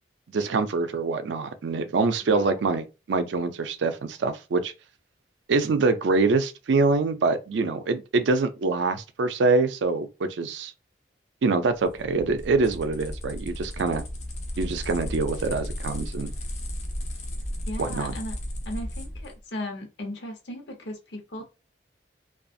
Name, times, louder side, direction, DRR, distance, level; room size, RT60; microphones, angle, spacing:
voice 1, 0.3-4.7 5.5-10.7 11.4-14.0 14.6-16.3 17.8-18.1, right 3 dB, 85° right, 0.4 m, -25 dB
voice 2, 2.2-2.7 17.7-18.4 18.7-21.4, left 1 dB, 80° left, 0.8 m, -36 dB
sound 1, 11.7-19.4, left 1 dB, 40° left, 0.6 m, -34 dB
2.5 x 2.3 x 2.4 m
head